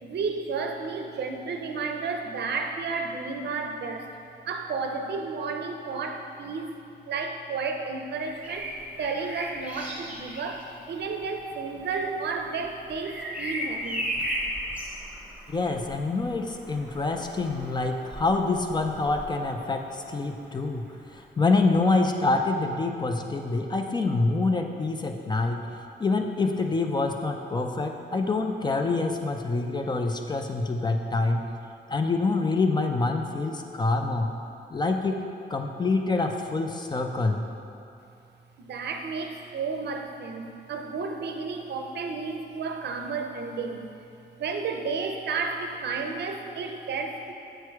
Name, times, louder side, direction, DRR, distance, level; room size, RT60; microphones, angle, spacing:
voice 1, 0.0-4.1 4.5-6.8 7.1-8.7 9.0-14.3 38.6-43.9 44.4-47.3, right 4 dB, 70° right, 4 dB, 0.5 m, -32 dB
Bird vocalization bird call bird song, 8.1-20.0 21.7-21.9, equal, 10° right, 1.1 m, -37 dB
voice 2, 15.5-20.8 21.1-25.6 26.0-31.4 31.9-34.3 34.7-35.2 35.5-37.4, left 3 dB, 25° left, 4 dB, 0.3 m, -26 dB
7.6 x 3.2 x 4.6 m, 2.8 s
wide cardioid pair, 125°, 18 cm